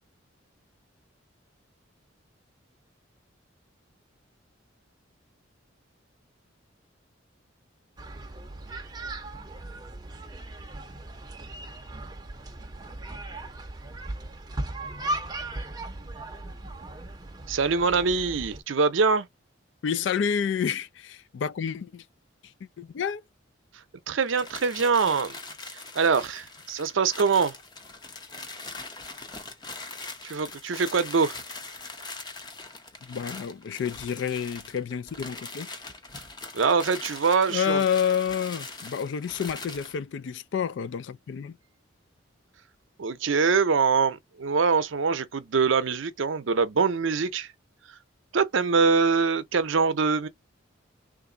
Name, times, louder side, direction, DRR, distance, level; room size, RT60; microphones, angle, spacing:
sound 1, 8.0-18.6, right 1 dB, 20° right, 0.6 m, -37 dB
voice 1, 17.5-19.3 24.1-25.4 25.7-27.6 30.2-31.4 36.5-37.8 43.0-47.5 47.9-48.0 48.3-50.3, right 5 dB, 75° right, 0.6 m, -24 dB
voice 2, 19.8-22.0 22.8-23.2 33.0-35.7 37.5-41.6, left 7 dB, 65° left, 0.3 m, -29 dB
sound 2, 24.2-40.0, left 3 dB, 20° left, 0.6 m, -42 dB
3.3 x 2.5 x 3.8 m
head